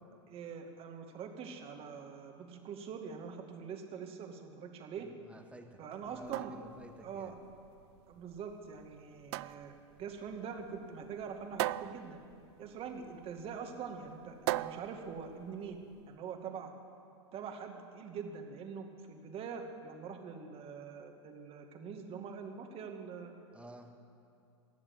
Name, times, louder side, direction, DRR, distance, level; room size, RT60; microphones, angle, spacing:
voice 1, 0.3-5.1 5.8-6.5 7.0-7.3 8.1-12.2 12.6-15.8 16.1-16.7 17.3-23.3, right 6 dB, 40° right, 4 dB, 2.0 m, -44 dB
voice 2, 5.3-5.8 6.1-7.3 23.5-23.9, right 1 dB, 10° right, 4 dB, 1.7 m, -52 dB
sound 1, 6.0-16.0, right 17 dB, 60° right, 0.4 m, -41 dB
15.0 x 7.3 x 9.9 m, 2.6 s
hypercardioid pair, 100°, 15 cm